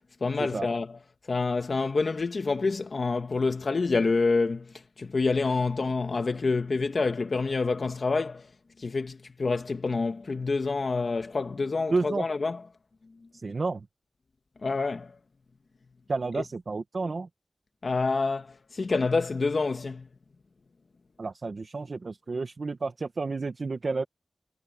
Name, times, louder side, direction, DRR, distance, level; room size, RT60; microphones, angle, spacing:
voice 1, 0.2-1.0 1.3-8.5 8.8-12.6 14.6-15.2 16.3-16.4 17.8-20.1, left 4 dB, 70° left, 1.7 m, -27 dB
voice 2, 11.9-12.3 13.4-13.8 16.1-17.3 21.2-24.0, right 3 dB, 65° right, 1.6 m, -31 dB
cardioid pair, 55°, 0 cm